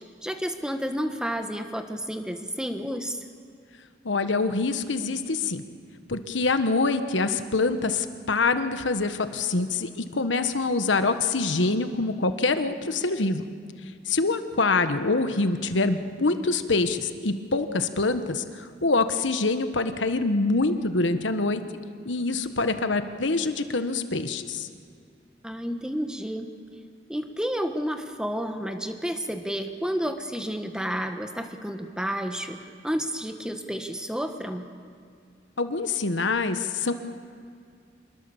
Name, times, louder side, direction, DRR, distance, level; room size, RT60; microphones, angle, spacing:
voice 1, 0.2-3.2 25.4-26.5 27.1-34.7, equal, 5° right, 6 dB, 1.2 m, -31 dB
voice 2, 4.0-5.6 6.1-13.4 14.1-21.6 22.0-24.7 35.6-36.9, left 3 dB, 90° left, 9 dB, 1.3 m, -25 dB
26.0 x 20.5 x 7.1 m, 2.3 s
head